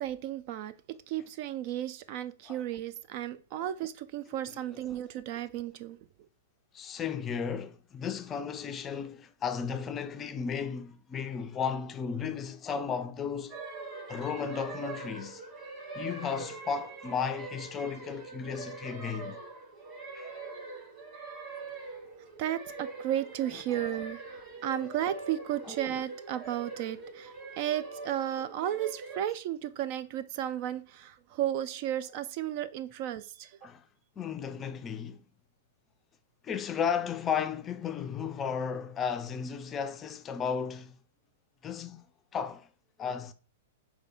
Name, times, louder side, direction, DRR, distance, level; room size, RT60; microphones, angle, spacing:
voice 1, 0.0-6.0 22.2-33.6, right 11 dB, 45° right, 0.3 m, -34 dB
voice 2, 6.7-13.6 14.1-15.4 15.9-19.4 20.1-20.3 25.7-25.8 33.6-33.8 34.2-35.2 36.4-41.0 41.6-42.1 42.3-42.7 43.0-43.3, left 7 dB, 25° left, 0.4 m, -34 dB
sound 1, 13.5-29.2, right 3 dB, 25° right, 2.0 m, -43 dB
4.7 x 2.3 x 4.3 m
figure-of-eight pair, 105°, 0 cm